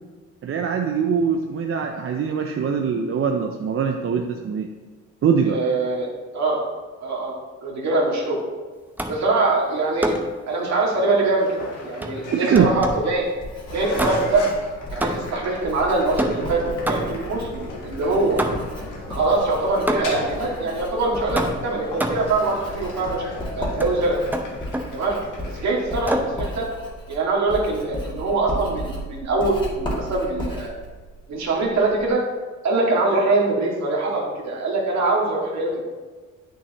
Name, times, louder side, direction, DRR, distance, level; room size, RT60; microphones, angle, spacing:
voice 1, 0.4-4.7 5.2-5.6 12.3-12.7, right 6 dB, 45° right, 3 dB, 0.6 m, -22 dB
voice 2, 5.5-6.1 6.3-6.6 7.0-7.4 7.6-8.4 9.1-10.1 10.5-13.2 13.7-14.4 14.9-18.4 19.1-24.2 24.9-25.2 25.4-26.7 27.1-30.7 31.3-32.2 32.6-35.8, right 2 dB, 65° right, -3 dB, 2.1 m, -23 dB
sound 1, 9.0-9.3 10.0-10.4 12.0-13.1 14.0-14.5 15.0-15.5 16.2-17.3 18.4-18.9 19.9-20.3 21.4-22.4 23.8-24.0 24.3-25.0 26.1-26.4, right 1 dB, 5° right, 0.7 m, -27 dB
sound 2, 11.4-25.9, left 2 dB, 80° left, 1.6 m, -37 dB
Writing, 12.6-32.1, equal, 15° left, 2.2 m, -35 dB
8.2 x 6.4 x 3.0 m, 1.4 s
cardioid pair, 90°, 30 cm